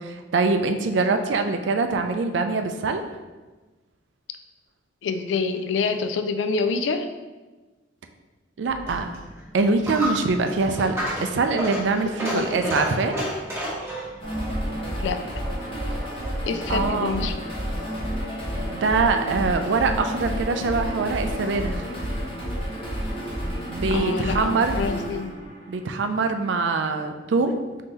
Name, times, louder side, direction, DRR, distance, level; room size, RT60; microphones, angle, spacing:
voice 1, 0.0-3.0 8.6-9.1 9.5-13.2 16.7-17.3 18.6-21.8 23.7-24.7 25.7-27.6, right 3 dB, 70° right, 6 dB, 0.4 m, -24 dB
voice 2, 5.0-7.1 12.3-12.8 15.0-15.2 16.5-17.4 23.9-25.3, left 4 dB, 75° left, 9 dB, 0.3 m, -27 dB
Coin (dropping), 8.7-16.2, right 1 dB, 15° right, 1.2 m, -32 dB
sound 1, 14.2-26.3, equal, 30° left, 1.0 m, -30 dB
3.7 x 2.8 x 4.0 m, 1.2 s
head